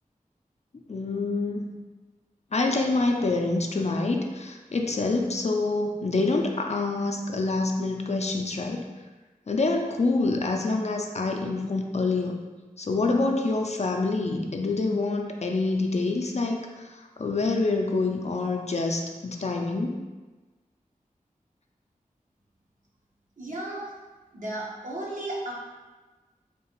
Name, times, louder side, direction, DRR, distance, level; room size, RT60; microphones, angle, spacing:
voice 1, 0.9-1.7 2.5-8.8 9.5-12.4 12.8-20.0, left 3 dB, 50° left, 2 dB, 0.4 m, -26 dB
voice 2, 23.4-23.9 24.3-25.5, right 1 dB, 60° right, -5 dB, 0.9 m, -34 dB
3.7 x 2.4 x 3.0 m, 1.2 s
wide cardioid pair, 50°, 14 cm